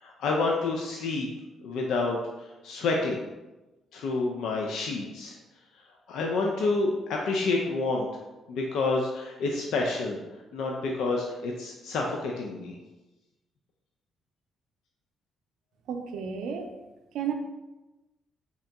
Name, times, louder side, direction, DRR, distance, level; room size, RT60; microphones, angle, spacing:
voice 1, 0.0-1.3 1.6-2.2 2.6-3.3 3.9-5.3 6.1-8.1 8.5-10.2 10.5-12.7, left 3 dB, 80° left, 0 dB, 0.4 m, -28 dB
voice 2, 15.9-16.7 17.1-17.3, right 7 dB, 80° right, 4 dB, 0.4 m, -32 dB
3.6 x 2.9 x 3.3 m, 1.1 s
cardioid pair, 90°, 0 cm